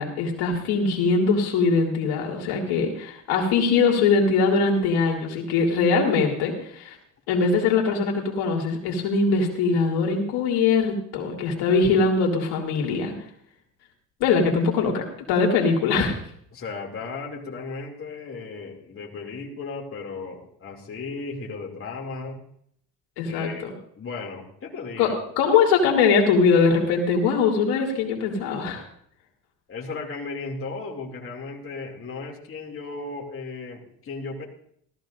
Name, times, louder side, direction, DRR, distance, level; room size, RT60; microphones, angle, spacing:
voice 1, 0.0-7.0 7.3-13.1 14.2-16.2 23.2-23.7 25.0-28.8, left 4 dB, 80° left, 0 dB, 2.4 m, -22 dB
voice 2, 16.5-22.4 23.2-23.6 24.0-25.2 29.7-34.4, left 4 dB, 35° left, -1 dB, 2.6 m, -35 dB
16.5 x 13.5 x 2.6 m, 0.66 s
cardioid pair, 105°, 38 cm